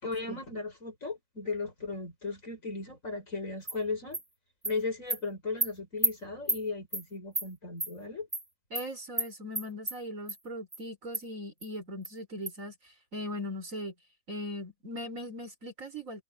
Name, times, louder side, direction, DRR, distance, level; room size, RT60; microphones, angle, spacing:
voice 1, 0.0-4.2 4.6-8.3, left 3 dB, 70° left, 6.7 m, -36 dB
Animal, 3.7-3.8 4.1-4.2 4.6-4.7 5.1-5.2 5.6-5.7 6.0-6.1 6.5-6.6 6.9-7.0 7.3-7.5 7.8-7.9 8.3-8.4 8.7-8.8 9.2-9.3 9.5-10.0 10.3-10.4 10.7-10.8 11.1-11.2 11.6-11.7 12.0-12.1 12.5-12.6, right 1 dB, 15° right, 1.7 m, -30 dB
voice 2, 8.7-13.9 14.3-16.2, left 1 dB, 75° right, 4.6 m, -39 dB
omnidirectional pair, 1.4 m